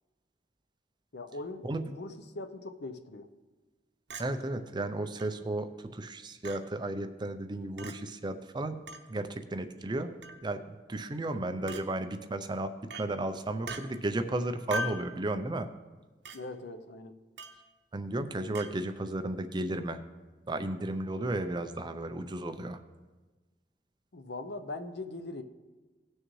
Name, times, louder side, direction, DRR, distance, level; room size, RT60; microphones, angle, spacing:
voice 1, 1.1-3.3 16.3-17.1 24.1-25.4, left 2 dB, 65° left, 9 dB, 0.7 m, -41 dB
Chink clink, 4.1-4.3 5.2-5.3 6.4-6.6 7.8-7.9 8.9-9.0 10.2-10.4 11.7-11.8 12.9-13.1 13.7-13.8 14.7-15.1 16.3-16.4 17.4-17.6 18.6-18.7, right 1 dB, 75° right, 0.9 m, -38 dB
voice 2, 4.2-8.8 9.1-10.6 10.9-12.7 13.0-15.7 17.9-20.0 20.5-22.8, right 2 dB, 25° right, 8 dB, 0.5 m, -34 dB
17.5 x 6.3 x 3.1 m, 1.3 s
head